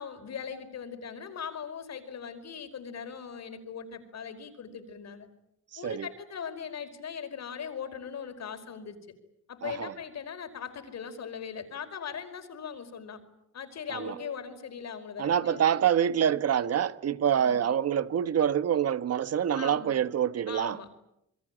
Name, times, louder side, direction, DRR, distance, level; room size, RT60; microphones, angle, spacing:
voice 1, 0.0-5.3 5.8-9.0 9.5-13.2 13.5-15.7 17.4-17.6 19.5-19.9 20.5-21.0, left 7 dB, 60° left, 5.0 m, -40 dB
voice 2, 15.2-20.8, right 9 dB, 55° right, 1.3 m, -26 dB
28.0 x 22.0 x 8.9 m
cardioid pair, 90°, 30 cm